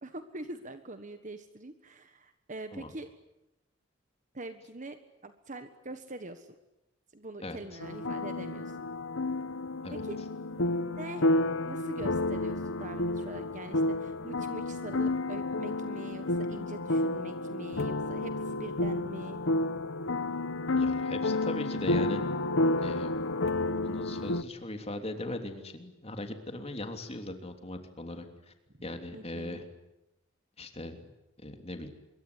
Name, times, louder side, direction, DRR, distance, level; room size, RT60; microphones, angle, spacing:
voice 1, 0.0-3.1 4.3-6.5 7.1-8.8 9.9-10.2 10.5-11.3 11.6-19.4 29.1-29.6, right 2 dB, 40° right, 9 dB, 1.4 m, -44 dB
voice 2, 7.4-7.8 9.8-10.0 20.7-22.2 22.8-23.3 23.8-28.5 28.8-29.7 30.6-31.1 31.4-31.9, left 1 dB, 30° left, 6 dB, 3.2 m, -39 dB
sound 1, 7.8-24.4, left 2 dB, 75° left, 1.1 m, -30 dB
25.5 x 23.0 x 9.7 m, 0.94 s
head